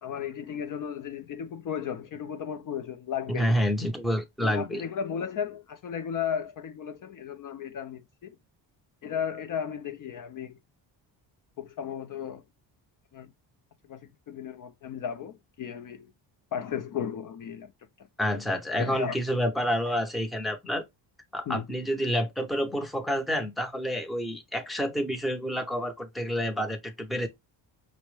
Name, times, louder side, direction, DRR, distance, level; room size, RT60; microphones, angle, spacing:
voice 1, 0.0-3.6 4.4-8.4 9.0-10.6 11.6-12.4 13.1-13.3 13.9-16.1 16.5-17.7 18.8-19.2 21.5-21.7, left 8 dB, 45° left, 0.4 m, -35 dB
voice 2, 3.3-4.8 18.2-20.8 21.3-27.3, equal, ahead, 0.6 m, -28 dB
4.3 x 2.1 x 3.1 m
cardioid pair, 90°, 47 cm